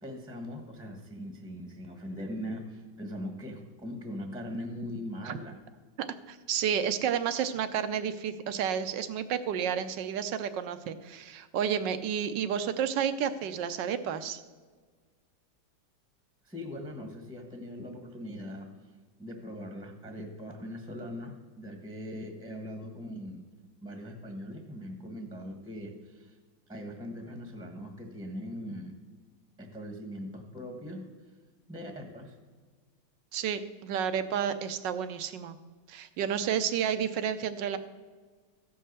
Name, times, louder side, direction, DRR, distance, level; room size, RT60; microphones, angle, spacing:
voice 1, 0.0-5.6 16.4-18.7 19.2-23.5 23.8-26.4 26.7-29.0 29.6-31.1 31.7-32.4, equal, 5° right, 4 dB, 0.9 m, -40 dB
voice 2, 6.0-14.4 33.3-35.6 35.9-37.8, right 8 dB, 75° right, 11 dB, 1.3 m, -31 dB
14.5 x 5.5 x 6.6 m, 1.5 s
omnidirectional pair, 2.1 m